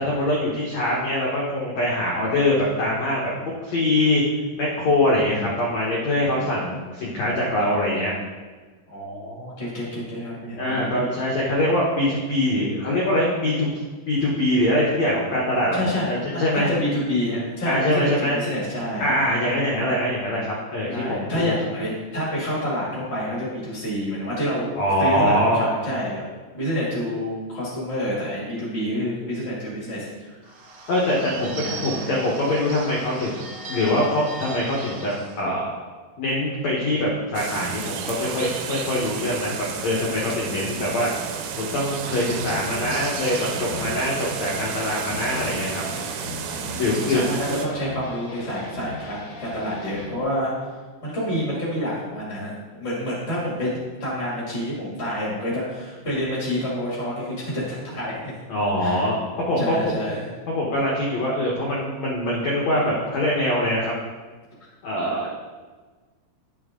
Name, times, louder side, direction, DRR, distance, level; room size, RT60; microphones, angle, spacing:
voice 1, 0.0-4.2 4.6-8.1 10.6-13.7 14.1-15.8 16.1-16.7 17.7-18.4 19.0-21.6 24.8-25.7 30.9-33.4 33.7-35.7 36.2-41.1 41.6-45.8 46.8-47.3 58.5-59.9 60.5-63.9 64.8-65.3, left 1 dB, 85° left, -4 dB, 1.5 m, -23 dB
voice 2, 8.9-11.1 14.2-14.3 15.7-19.2 20.8-24.6 25.0-26.2 26.5-30.6 31.6-32.1 46.5-50.7 51.0-58.3 58.8-59.1 59.6-60.3, equal, 30° left, -7 dB, 1.2 m, -28 dB
Bird / Bell, 30.4-35.4, right 3 dB, 70° right, 2.2 m, -38 dB
sound 1, 37.4-47.7, right 7 dB, 90° right, 3.1 m, -32 dB
sound 2, 42.3-50.2, left 4 dB, 60° left, 1.8 m, -39 dB
10.5 x 6.7 x 3.7 m, 1.4 s
omnidirectional pair, 5.1 m